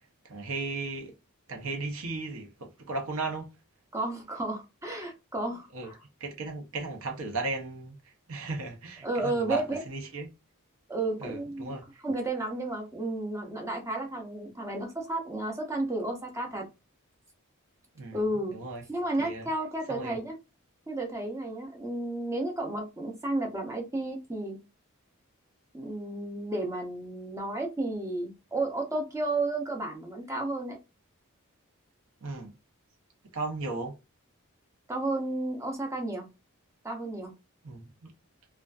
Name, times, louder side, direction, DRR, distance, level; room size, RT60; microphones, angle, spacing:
voice 1, 0.2-1.1 1.5-3.5 5.7-5.9 6.2-10.3 11.2-12.0 17.9-18.8 19.2-19.5 19.9-20.2 32.2-32.5 33.3-33.9 37.6-38.1, right 3 dB, 70° right, 0.7 m, -36 dB
voice 2, 3.9-6.0 9.0-9.8 10.9-11.8 12.0-16.6 18.1-18.6 18.9-20.4 20.9-24.6 25.7-30.8 34.9-36.3 36.8-37.3, right 2 dB, 15° right, 0.6 m, -32 dB
2.4 x 2.3 x 2.3 m
head